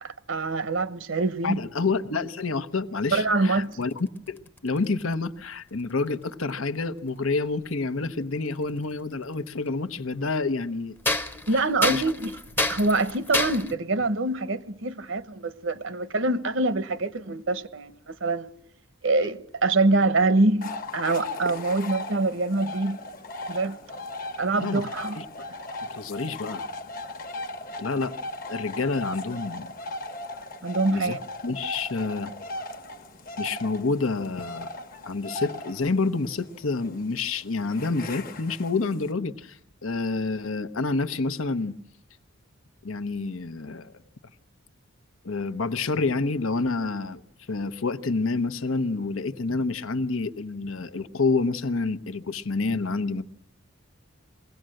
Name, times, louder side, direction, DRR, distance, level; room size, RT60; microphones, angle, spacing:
voice 1, 0.0-1.6 3.1-3.7 11.5-18.5 19.0-23.0 23.5-23.8 24.4-25.2 30.6-31.2, right 2 dB, 65° right, 1.0 m, -25 dB
voice 2, 1.4-11.0 11.5-11.6 11.9-12.0 24.6-24.8 25.2-25.3 26.0-26.6 27.8-28.1 28.5-29.7 30.9-31.2 31.4-32.3 33.4-34.7 35.1-41.7 42.8-43.9 45.2-47.2 47.5-53.2, left 3 dB, 80° left, 0.9 m, -28 dB
sound 1, 3.7-5.1 6.4-6.5 8.6-8.7 9.5-9.6 11.0-13.7, left 2 dB, 10° left, 0.8 m, -29 dB
sound 2, 20.6-39.1, left 2 dB, 45° left, 1.2 m, -38 dB
22.5 x 17.0 x 7.7 m
head